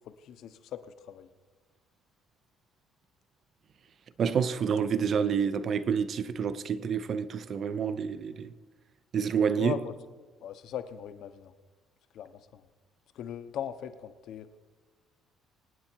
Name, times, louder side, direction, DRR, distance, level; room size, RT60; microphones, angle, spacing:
voice 1, 0.0-1.3 9.6-9.9 10.4-11.5 12.1-12.7 13.1-14.5, left 9 dB, 55° left, 0.9 m, -39 dB
voice 2, 4.2-8.5 9.1-9.8, right 7 dB, 35° right, 0.7 m, -28 dB
25.5 x 9.6 x 4.5 m
cardioid pair, 170°, 0 cm